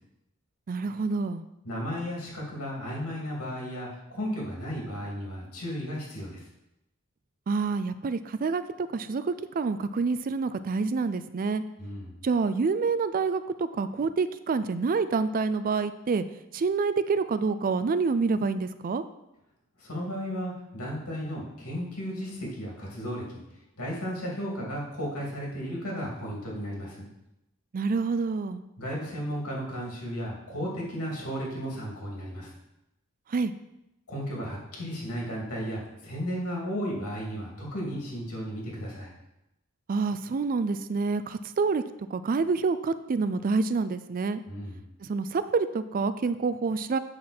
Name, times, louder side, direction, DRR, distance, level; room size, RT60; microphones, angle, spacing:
voice 1, 0.7-1.4 7.5-11.6 12.2-16.2 16.5-19.0 27.7-28.6 33.3-33.5 39.9-41.8 42.1-44.4 45.1-47.0, right 4 dB, 40° right, 12 dB, 0.4 m, -27 dB
voice 2, 1.6-6.4 11.8-12.1 19.8-23.4 23.8-27.1 28.8-32.5 34.1-39.1 44.5-44.8, equal, 85° left, -3 dB, 2.8 m, -34 dB
7.7 x 6.3 x 4.3 m, 0.89 s
head